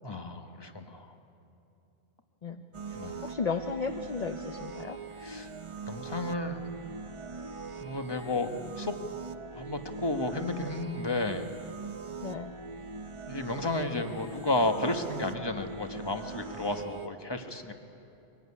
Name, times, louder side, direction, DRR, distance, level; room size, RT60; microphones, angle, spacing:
voice 1, 0.0-1.1 2.9-3.3 5.2-5.5 5.9-6.7 7.8-9.0 9.5-11.5 13.3-17.7, left 2 dB, 25° left, 6 dB, 1.3 m, -32 dB
sound 1, 2.7-17.1, right 4 dB, 35° right, 0.7 m, -42 dB
voice 2, 3.2-5.0 12.2-12.5, left 5 dB, 40° left, 6 dB, 0.8 m, -34 dB
24.0 x 17.0 x 9.8 m, 2.8 s
omnidirectional pair, 1.1 m